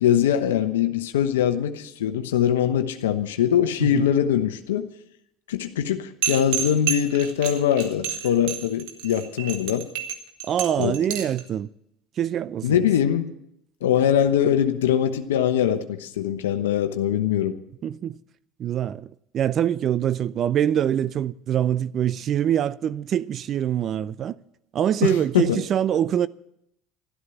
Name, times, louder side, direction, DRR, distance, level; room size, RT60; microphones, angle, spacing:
voice 1, 0.0-4.9 5.5-9.9 10.8-10.9 12.6-13.3 13.8-17.6 25.0-25.6, left 9 dB, 90° left, 0.9 m, -22 dB
sound 1, 6.2-11.4, right 9 dB, 75° right, 1.9 m, -29 dB
voice 2, 10.4-11.7 12.2-12.8 17.8-18.1 18.6-24.4 24.7-26.3, right 10 dB, 50° right, 0.5 m, -24 dB
13.0 x 12.5 x 6.9 m
hypercardioid pair, 80°, 0 cm